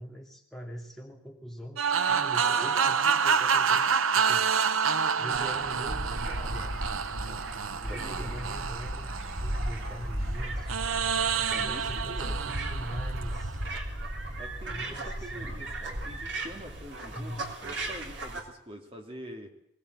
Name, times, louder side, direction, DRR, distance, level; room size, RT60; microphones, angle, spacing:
voice 1, 0.0-3.9 4.1-4.5 5.2-6.9 7.3-7.5 7.8-9.1 9.4-10.7 11.3-13.6 14.6-15.7 17.1-17.5, equal, ahead, 0 dB, 2.6 m, -43 dB
sound 1, 1.8-10.0 10.7-13.8, right 6 dB, 90° right, 0.8 m, -28 dB
sound 2, 5.3-18.4, right 1 dB, 60° right, 3.5 m, -35 dB
voice 2, 7.9-8.4 11.3-12.4 14.4-17.3 17.6-19.5, right 1 dB, 25° right, 3 dB, 2.6 m, -45 dB
22.0 x 19.5 x 8.0 m, 0.73 s
head